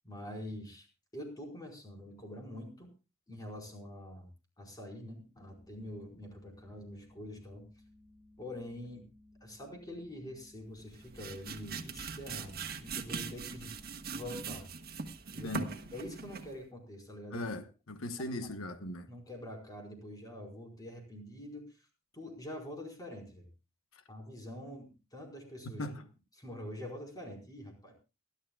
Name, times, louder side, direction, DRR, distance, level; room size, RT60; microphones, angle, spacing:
voice 1, 0.0-0.9 1.1-2.9 3.3-4.3 4.6-7.6 8.4-9.0 9.4-13.7 14.1-14.7 15.3-15.7 15.9-17.4 19.1-21.7 22.1-23.4 24.1-25.8 26.4-27.9, left 1 dB, 20° left, 4.8 m, -45 dB
sound 1, 5.3-14.5, left 1 dB, 35° left, 4.3 m, -61 dB
sound 2, 10.8-16.6, right 5 dB, 50° right, 1.5 m, -41 dB
voice 2, 17.3-19.1 25.6-26.0, left 1 dB, 80° left, 1.2 m, -39 dB
29.0 x 12.0 x 2.4 m
head